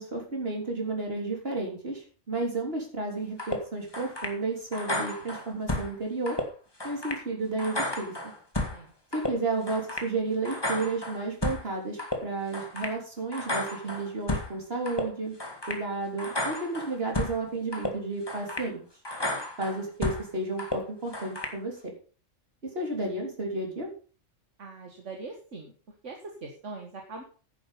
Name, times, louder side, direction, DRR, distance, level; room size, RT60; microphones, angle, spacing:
voice 1, 0.0-6.4 6.8-8.1 9.1-15.3 15.7-18.8 19.6-21.8 22.6-23.9, right 3 dB, 50° right, 1 dB, 3.8 m, -32 dB
sound 1, 3.4-3.6 3.9-4.4 4.7-5.9 6.3-6.4 6.8-7.2 7.6-8.8 9.1-9.3 9.7-10.1 10.5-11.6 12.0-12.2 12.5-13.0 13.3-14.5 14.9-15.0 15.4-15.8 16.2-17.4 17.7-17.9 18.3-18.7 19.0-20.2 20.6-20.8 21.1-21.6, left 1 dB, 20° left, 2.1 m, -32 dB
voice 2, 24.6-25.7 26.0-27.2, right 3 dB, 70° right, 2 dB, 2.0 m, -41 dB
10.0 x 8.8 x 5.6 m, 0.38 s
omnidirectional pair, 1.3 m